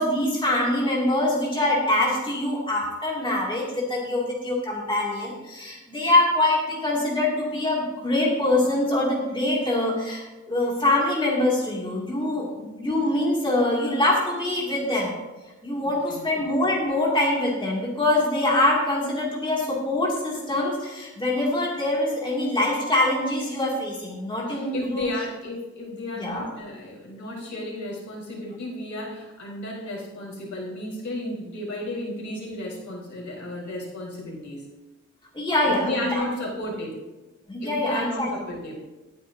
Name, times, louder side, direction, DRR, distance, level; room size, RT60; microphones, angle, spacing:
voice 1, 0.0-15.1 15.6-25.1 26.2-26.5 35.3-36.2 37.5-38.3, left 1 dB, 15° left, -5 dB, 2.4 m, -24 dB
voice 2, 15.8-16.3 24.5-34.6 35.6-37.0 37.6-38.8, left 1 dB, 65° left, -4 dB, 4.3 m, -33 dB
18.5 x 9.8 x 2.7 m, 1.1 s
wide cardioid pair, 145°, 31 cm